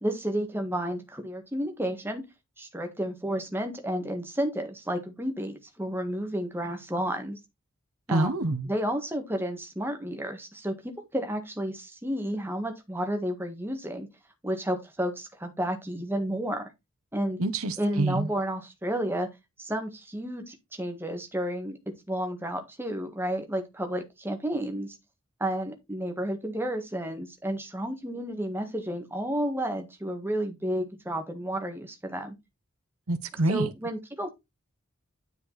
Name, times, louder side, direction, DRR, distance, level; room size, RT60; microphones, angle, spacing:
voice 1, 0.0-2.2 2.6-7.4 8.1-8.3 8.7-10.7 11.1-14.1 14.4-16.7 17.1-17.4 17.8-19.3 19.6-21.8 22.1-25.0 25.4-32.3 33.5-34.3, equal, 10° right, 1.5 m, -31 dB
voice 2, 8.1-8.7 17.4-18.3 33.1-33.7, right 2 dB, 90° right, 1.1 m, -26 dB
9.8 x 5.2 x 4.0 m
head